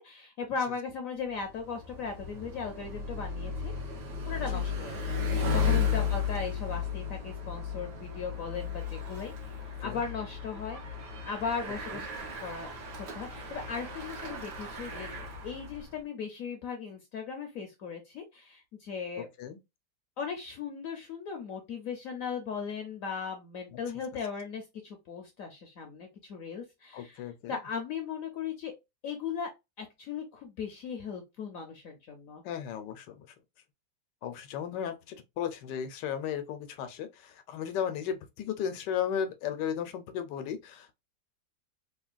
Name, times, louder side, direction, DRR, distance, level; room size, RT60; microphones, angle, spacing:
voice 1, 0.0-3.7 4.2-10.8 11.2-12.7 13.0-15.1 15.4-19.3 20.2-28.7 29.0-29.5 29.8-32.4, left 6 dB, 65° left, 0.9 m, -38 dB
Bicycle, 1.3-15.9, left 6 dB, 75° right, 1.6 m, -34 dB
voice 2, 26.9-27.6 32.4-33.3 34.2-40.9, left 8 dB, 85° left, 1.3 m, -35 dB
3.7 x 2.2 x 2.4 m
omnidirectional pair, 1.8 m